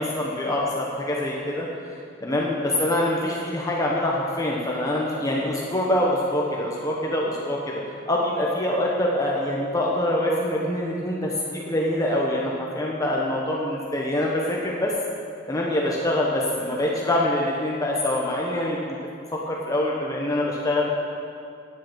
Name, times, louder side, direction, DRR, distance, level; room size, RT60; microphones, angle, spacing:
voice 1, 0.0-1.7 2.2-14.9 15.5-19.0 19.3-20.9, left 1 dB, 20° left, -3 dB, 1.1 m, -25 dB
9.8 x 8.5 x 7.4 m, 2.4 s
head